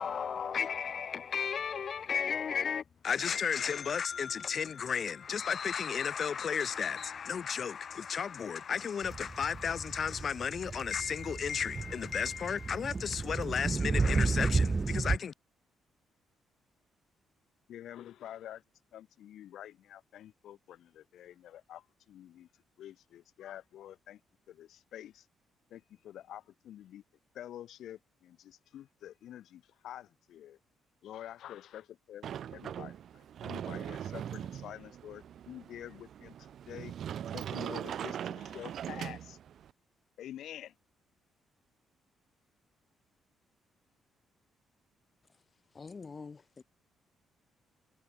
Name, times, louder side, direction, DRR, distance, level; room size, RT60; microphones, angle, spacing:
voice 1, 0.0-15.3, left 7 dB, 50° left, 0.5 m, -34 dB
sound 1, 9.0-15.2, right 4 dB, 30° right, 1.5 m, -32 dB
voice 2, 17.7-18.6 18.9-22.5 22.8-24.2 24.5-25.3 25.7-27.0 27.3-30.6 31.0-36.9 37.3-39.4 40.2-40.8, left 11 dB, 75° left, 7.6 m, -48 dB
Sliding door, 32.2-39.7, right 9 dB, 65° right, 3.6 m, -41 dB
voice 3, 45.7-46.6, left 4 dB, 35° left, 6.9 m, -46 dB
cardioid pair, 90°, 0 cm